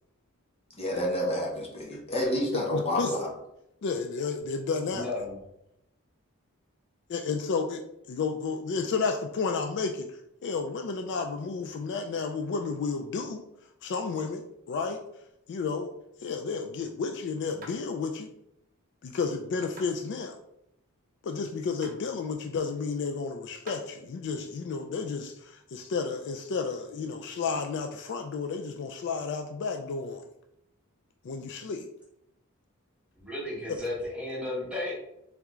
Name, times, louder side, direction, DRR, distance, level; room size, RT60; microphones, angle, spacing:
voice 1, 0.7-3.3, left 1 dB, 30° left, -2 dB, 0.9 m, -29 dB
voice 2, 2.5-3.1 3.8-5.1 7.1-7.8 8.0-13.4 13.8-15.0 15.5-15.9 16.2-18.3 19.0-20.4 21.2-30.2 31.2-31.9 33.7-33.8, left 4 dB, 55° left, 5 dB, 0.3 m, -32 dB
voice 3, 4.9-5.4 33.2-35.0, left 2 dB, 5° right, -5 dB, 1.3 m, -34 dB
sound 1, 17.6-17.8 19.8-20.0 21.8-22.0 23.7-23.8, right 1 dB, 40° right, 0.8 m, -45 dB
3.6 x 3.4 x 3.0 m, 0.81 s
head